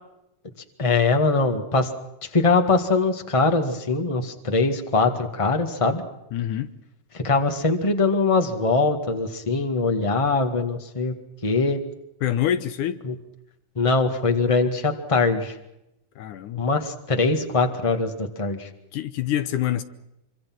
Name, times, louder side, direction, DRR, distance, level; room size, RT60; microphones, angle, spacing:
voice 1, 0.8-1.9 2.3-6.0 7.1-11.1 11.4-11.8 13.0-13.1 13.7-15.5 16.6-18.7, left 3 dB, 30° left, 0.5 m, -22 dB
voice 2, 6.3-6.7 12.2-13.0 16.2-16.7 18.9-19.8, left 11 dB, 70° left, 2.2 m, -26 dB
25.5 x 25.0 x 6.1 m
omnidirectional pair, 4.3 m